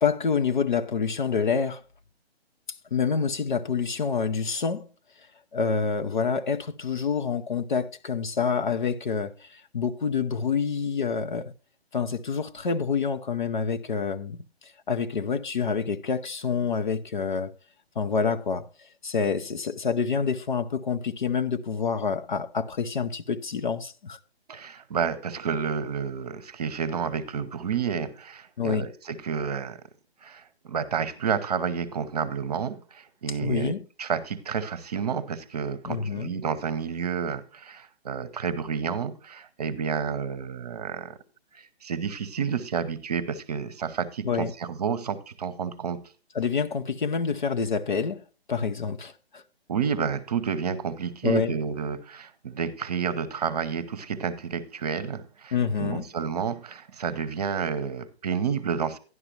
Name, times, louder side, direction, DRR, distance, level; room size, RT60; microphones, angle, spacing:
voice 1, 0.0-1.8 2.9-4.9 5.5-11.5 11.9-17.5 18.0-24.2 28.6-28.9 33.3-33.8 35.8-36.3 44.2-44.5 46.3-48.2 48.5-49.4 51.2-51.6 55.5-56.1, left 6 dB, 45° left, 0.7 m, -27 dB
voice 2, 24.5-29.8 30.2-41.2 41.5-46.0 49.7-59.0, right 6 dB, 40° right, 0.9 m, -30 dB
12.0 x 11.0 x 2.9 m
figure-of-eight pair, 135°, 32 cm